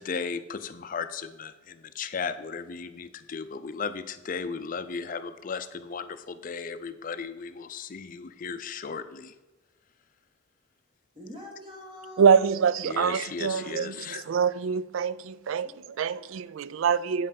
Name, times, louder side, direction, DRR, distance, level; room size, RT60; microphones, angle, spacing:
voice 1, 0.0-9.3 12.9-14.2, left 5 dB, 40° left, 0.5 m, -36 dB
voice 2, 11.1-12.4 13.0-13.1 15.6-16.2 16.7-16.8, left 1 dB, 25° right, 1.8 m, -45 dB
voice 3, 12.2-17.3, right 6 dB, 80° right, 0.3 m, -25 dB
8.4 x 5.5 x 5.2 m
head